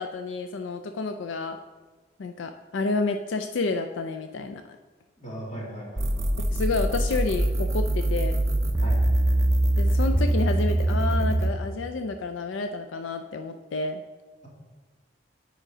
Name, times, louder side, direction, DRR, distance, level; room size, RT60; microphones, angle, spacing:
voice 1, 0.0-1.6 2.2-4.8 6.5-8.4 9.8-14.0, left 3 dB, 85° left, 6 dB, 0.4 m, -30 dB
voice 2, 5.2-6.3 8.8-9.0, right 1 dB, 35° left, -5 dB, 2.5 m, -38 dB
sound 1, 6.0-11.5, right 1 dB, 15° right, 0.5 m, -23 dB
9.0 x 5.1 x 4.9 m, 1.3 s
head